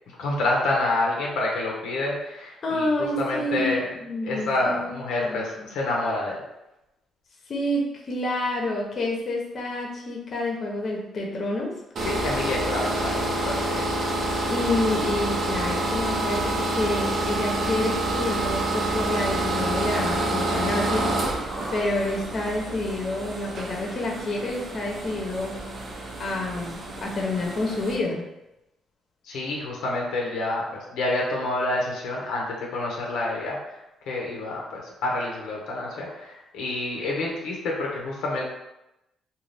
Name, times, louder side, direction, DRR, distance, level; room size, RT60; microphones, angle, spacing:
voice 1, 0.2-3.9 4.2-6.4 12.0-13.9 29.2-33.8 34.1-38.5, left 2 dB, 90° left, -3 dB, 0.6 m, -28 dB
voice 2, 2.6-3.8 4.0-5.7 7.5-11.7 14.5-21.1 21.7-25.5 26.2-28.2, left 2 dB, 50° left, -1 dB, 0.7 m, -28 dB
sound 1, 12.0-28.0, right 2 dB, 55° right, 0.6 m, -28 dB
2.5 x 2.3 x 3.3 m, 0.92 s
cardioid pair, 90°, 0 cm